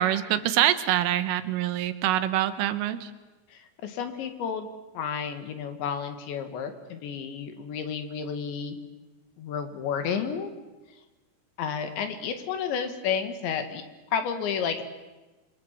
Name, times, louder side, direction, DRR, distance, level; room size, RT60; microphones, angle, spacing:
voice 1, 0.0-3.1, right 12 dB, 85° right, 11 dB, 3.8 m, -25 dB
voice 2, 3.5-4.7 4.9-8.8 9.4-10.5 11.6-13.8 14.1-14.8, left 7 dB, 65° left, 8 dB, 4.1 m, -31 dB
27.0 x 25.0 x 7.6 m, 1.2 s
omnidirectional pair, 5.7 m